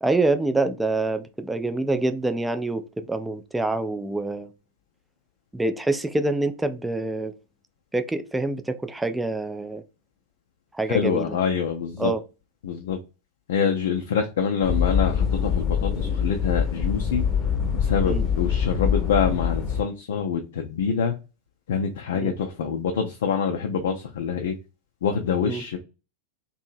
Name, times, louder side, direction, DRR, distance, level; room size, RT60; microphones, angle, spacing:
voice 1, 0.0-4.5 5.5-7.3 7.9-9.8 10.7-11.4 12.0-12.2 18.0-18.2 22.2-22.4 25.4-25.7, right 2 dB, 5° right, 0.3 m, -26 dB
voice 2, 10.9-12.1 12.6-13.0 13.5-17.2 17.8-21.1 21.7-24.5 25.0-25.8, left 6 dB, 60° left, 0.4 m, -25 dB
sound 1, 14.6-19.8, left 7 dB, 30° left, 0.7 m, -24 dB
2.8 x 2.7 x 2.5 m
figure-of-eight pair, 90°, 0 cm